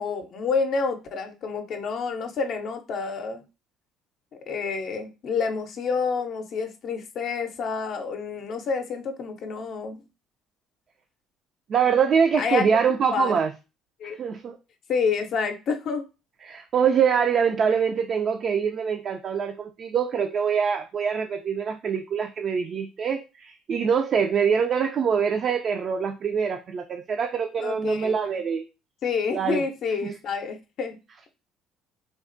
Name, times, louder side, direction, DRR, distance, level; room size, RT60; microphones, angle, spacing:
voice 1, 0.0-3.4 4.5-10.0 12.4-12.6 13.1-13.3 14.0-14.2 14.9-16.0 27.6-28.1 29.0-31.0, left 5 dB, 60° left, 6 dB, 0.5 m, -28 dB
voice 2, 11.7-13.5 14.2-14.6 16.4-28.6 29.3-29.6 30.0-30.1, right 6 dB, 50° right, 5 dB, 0.3 m, -24 dB
3.3 x 2.0 x 2.5 m, 0.29 s
hypercardioid pair, 70°, 0 cm